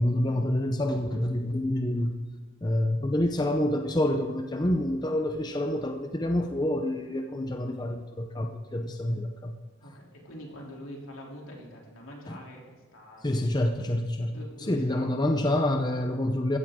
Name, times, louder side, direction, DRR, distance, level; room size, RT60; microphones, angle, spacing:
voice 1, 0.0-2.2 2.6-9.5 12.3-12.4 13.2-16.6, left 1 dB, 20° left, 5 dB, 0.6 m, -27 dB
voice 2, 9.8-13.4 14.3-15.1, equal, 85° left, -2 dB, 3.1 m, -45 dB
15.0 x 13.5 x 3.7 m, 1.3 s
head